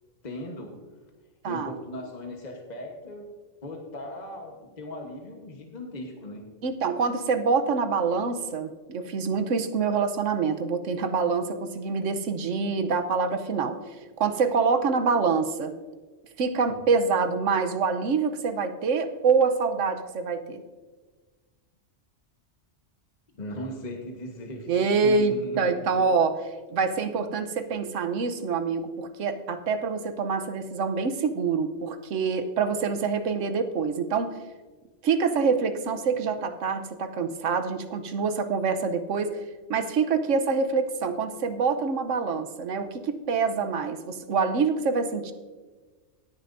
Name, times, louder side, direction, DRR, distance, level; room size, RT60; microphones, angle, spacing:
voice 1, 0.2-0.7 1.5-3.3 3.6-6.4 23.3-25.7, left 1 dB, 35° left, 1 dB, 1.3 m, -38 dB
voice 2, 1.4-1.8 6.6-13.8 14.2-15.7 16.4-20.6 24.7-26.4 26.7-34.3 35.0-39.3 39.7-45.3, right 5 dB, 75° right, 9 dB, 1.2 m, -26 dB
17.5 x 10.0 x 2.6 m, 1.3 s
omnidirectional pair, 1.3 m